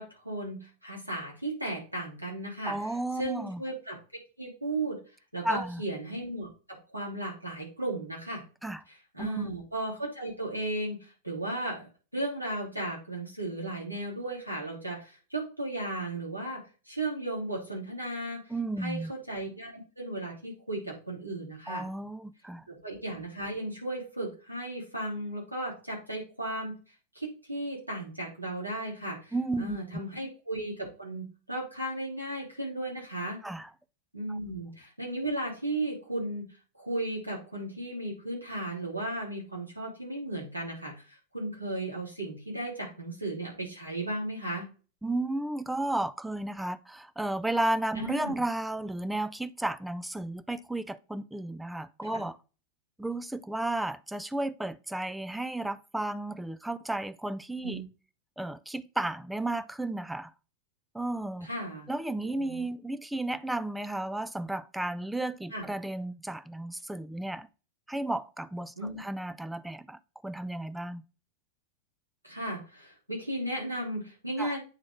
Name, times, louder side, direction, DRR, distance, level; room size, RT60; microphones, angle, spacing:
voice 1, 0.0-2.7 3.2-3.9 4.4-5.0 5.3-8.4 8.9-16.6 16.8-18.4 18.8-21.9 22.7-26.7 27.1-33.4 34.1-36.5 36.8-44.7 47.9-48.4 52.0-52.2 57.6-57.8 61.4-61.9 62.2-62.6 65.5-65.7 68.8-69.0 72.2-74.6, right 1 dB, 90° right, 2.9 m, -35 dB
voice 2, 2.7-3.6 5.4-5.8 8.6-8.8 9.2-9.5 18.5-19.1 21.7-22.6 29.3-29.8 33.4-33.7 34.3-34.4 45.0-52.4 53.0-57.8 58.4-60.3 60.9-61.5 61.9-67.5 67.9-71.0 74.4-74.6, right 1 dB, 5° right, 0.4 m, -33 dB
8.7 x 3.8 x 3.6 m
figure-of-eight pair, 90°, 0 cm